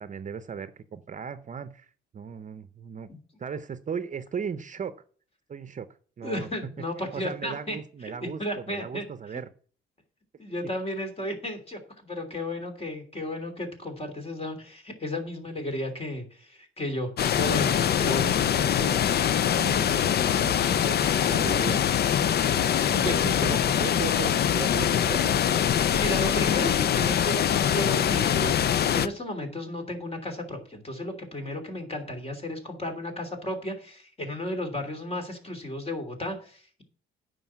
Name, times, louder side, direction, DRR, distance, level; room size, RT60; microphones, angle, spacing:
voice 1, 0.0-3.1 3.4-5.0 5.5-5.9 6.2-6.7 7.1-9.5 17.9-19.0 19.4-22.4 22.9-25.6, right 6 dB, 40° right, 13 dB, 0.7 m, -37 dB
voice 2, 6.2-7.8 8.4-9.0 10.4-18.7 22.8-23.1 25.9-36.8, left 1 dB, 30° left, 5 dB, 3.0 m, -34 dB
sound 1, 17.2-29.1, left 9 dB, 55° left, 0.6 m, -23 dB
9.3 x 5.3 x 7.3 m, 0.44 s
cardioid pair, 90°, 20 cm